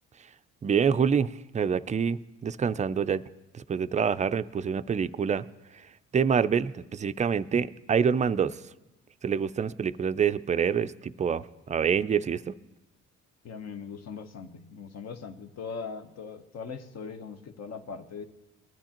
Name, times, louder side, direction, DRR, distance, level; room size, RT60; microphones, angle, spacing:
voice 1, 0.6-3.2 3.5-5.4 6.1-8.6 9.2-10.9 11.2-12.5, right 7 dB, 25° right, 13 dB, 0.3 m, -26 dB
voice 2, 13.4-18.2, left 5 dB, 60° left, 8 dB, 1.0 m, -40 dB
20.0 x 10.5 x 2.9 m, 0.98 s
cardioid pair, 90°, 30 cm